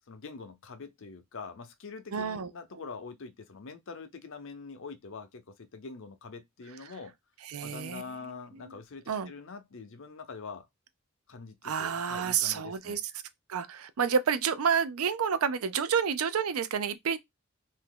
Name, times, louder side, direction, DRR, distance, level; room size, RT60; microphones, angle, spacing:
voice 1, 0.1-7.1 7.6-10.7 11.3-13.0, left 4 dB, 65° left, 0.7 m, -44 dB
voice 2, 2.1-2.5 7.4-8.0 8.5-8.7 9.1-9.3 11.6-13.0 13.5-17.2, right 7 dB, 85° right, 0.5 m, -29 dB
2.8 x 2.6 x 3.8 m
head